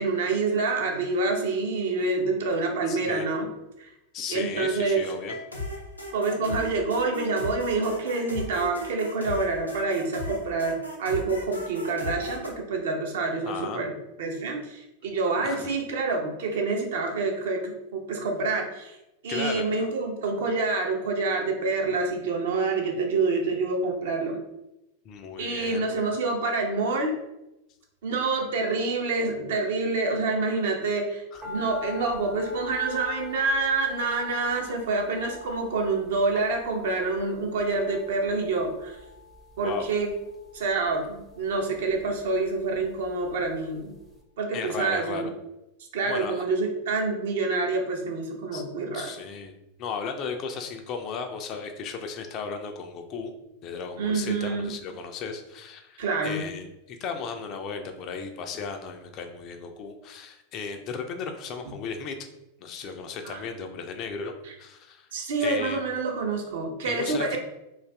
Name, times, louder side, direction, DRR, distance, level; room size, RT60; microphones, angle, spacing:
voice 1, 0.0-3.5 3.8-3.9 4.3-5.1 6.1-13.9 14.2-19.0 19.2-24.4 25.4-27.2 28.0-39.0 39.6-40.1 40.5-43.9 44.4-45.3 45.9-49.1 54.0-54.7 56.0-56.5 63.2-63.4 64.4-64.5 65.1-67.4, right 3 dB, 60° right, 2 dB, 0.6 m, -27 dB
voice 2, 2.9-3.3 4.1-5.4 13.5-13.8 15.4-15.7 19.3-19.6 25.0-26.1 31.3-31.4 39.6-39.9 44.5-45.3 46.1-46.4 48.5-48.6 48.9-49.5 49.8-53.3 53.6-62.2 62.6-65.1 65.4-65.8 66.8-67.4, left 5 dB, 35° left, 5 dB, 0.4 m, -35 dB
sound 1, 5.2-12.5, left 1 dB, 85° left, 0.5 m, -36 dB
sound 2, 31.4-43.7 44.0-44.1, left 3 dB, 15° right, 0.5 m, -44 dB
2.5 x 2.4 x 3.3 m, 0.91 s
figure-of-eight pair, 90°, 0 cm